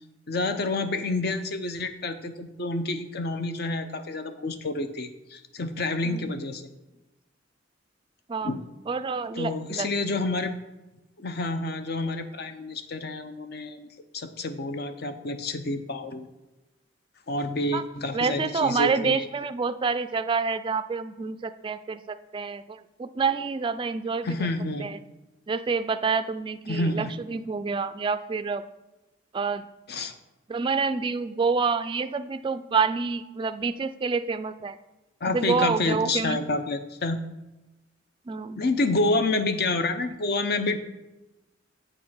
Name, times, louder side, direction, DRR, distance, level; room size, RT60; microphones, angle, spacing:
voice 1, 0.3-6.6 8.4-8.6 9.4-10.5 11.2-13.9 14.1-16.3 17.3-19.2 24.2-24.9 26.7-27.1 29.9-30.1 35.2-37.2 38.6-40.8, left 2 dB, 55° left, 9 dB, 0.7 m, -28 dB
voice 2, 8.9-9.9 17.7-17.8 18.1-24.5 24.8-25.0 25.5-28.6 29.3-29.7 30.5-34.8 35.3-36.4 38.3-38.6, right 5 dB, 25° right, 10 dB, 0.3 m, -28 dB
8.4 x 5.5 x 5.6 m, 1.0 s
head